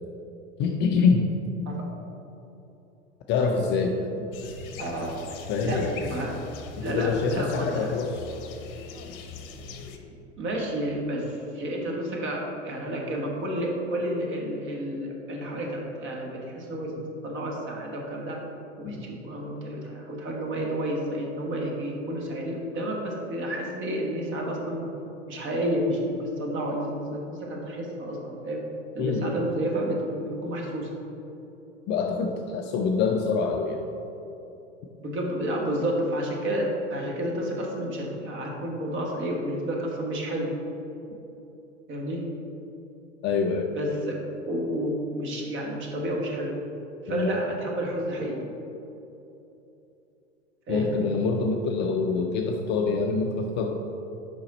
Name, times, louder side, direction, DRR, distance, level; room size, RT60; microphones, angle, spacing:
voice 1, 0.6-1.3 3.3-4.3 5.5-6.1 6.8-8.3 18.8-19.0 29.0-29.4 31.9-33.8 43.2-43.7 47.1-47.4 50.7-53.8, left 4 dB, 30° left, 2 dB, 0.4 m, -25 dB
sound 1, 4.3-10.0, left 5 dB, 50° left, 0.8 m, -41 dB
voice 2, 4.8-5.2 5.6-6.3 6.8-7.9 10.4-18.4 18.8-24.9 25.3-28.6 28.9-30.9 35.0-40.5 41.9-42.2 43.7-46.5 47.0-48.4 50.7-50.9, right 1 dB, 30° right, 0 dB, 1.3 m, -30 dB
6.2 x 5.2 x 4.2 m, 2.9 s
figure-of-eight pair, 90°, 37 cm